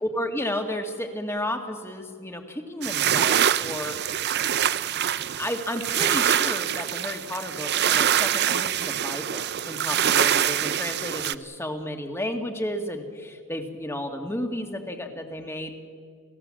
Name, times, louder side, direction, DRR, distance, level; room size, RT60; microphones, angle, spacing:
voice 1, 0.0-4.0 5.3-15.8, left 1 dB, 10° left, 5 dB, 1.9 m, -32 dB
sound 1, 2.8-11.3, right 10 dB, 50° right, 0.6 m, -24 dB
30.0 x 15.5 x 7.6 m, 2.1 s
head